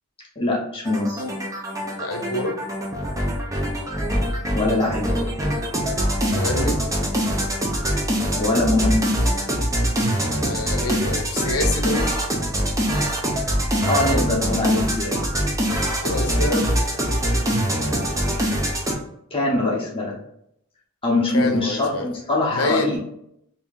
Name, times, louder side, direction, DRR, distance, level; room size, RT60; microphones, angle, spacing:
voice 1, 0.4-1.2 4.5-5.3 8.3-9.0 13.9-15.2 19.3-20.2 21.0-23.0, left 2 dB, 25° left, -2 dB, 0.7 m, -22 dB
sound 1, 0.8-18.9, equal, 15° right, 0.5 m, -23 dB
voice 2, 2.0-2.6 6.3-6.8 10.4-12.1 16.0-16.7 21.3-22.1 22.5-23.0, left 2 dB, 80° left, 4 dB, 0.7 m, -26 dB
2.8 x 2.7 x 3.6 m, 0.75 s
head